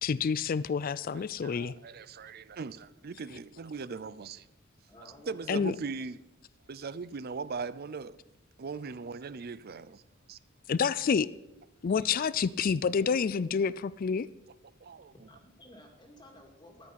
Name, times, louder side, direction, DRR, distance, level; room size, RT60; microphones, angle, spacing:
voice 1, 0.0-1.7 5.5-5.7 10.7-11.3 11.8-14.3, left 6 dB, 45° left, 0.4 m, -28 dB
voice 2, 1.1-4.5 5.3-6.2 6.7-8.2 8.6-10.0 10.3-10.4 12.2-12.3 12.6-12.7 13.0-13.1 14.8-15.3, right 4 dB, 50° right, 0.5 m, -40 dB
voice 3, 4.9-5.8 15.2-16.9, left 1 dB, 20° left, 2.2 m, -54 dB
13.5 x 11.0 x 5.8 m
head